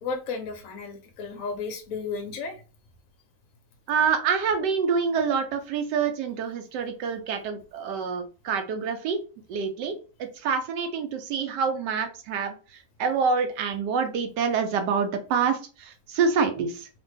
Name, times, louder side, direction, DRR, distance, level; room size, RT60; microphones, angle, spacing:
voice 1, 0.0-2.6, left 4 dB, 65° left, 5 dB, 0.9 m, -33 dB
voice 2, 3.9-9.2 9.5-16.9, right 6 dB, 75° right, 7 dB, 1.2 m, -27 dB
3.0 x 2.5 x 3.2 m, 0.35 s
omnidirectional pair, 1.9 m